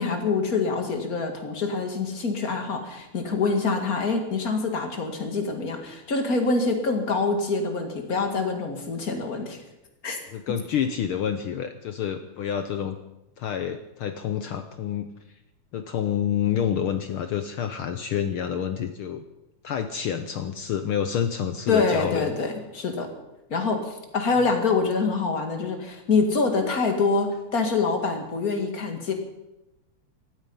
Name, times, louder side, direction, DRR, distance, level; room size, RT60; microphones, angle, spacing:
voice 1, 0.0-9.6 10.0-10.2 21.7-23.1 23.5-29.1, left 4 dB, 35° left, 5 dB, 2.1 m, -25 dB
voice 2, 10.3-13.0 13.4-15.1 15.7-19.2 19.6-22.4, left 9 dB, 80° left, 9 dB, 1.2 m, -28 dB
18.0 x 14.0 x 5.5 m, 0.94 s
omnidirectional pair, 3.4 m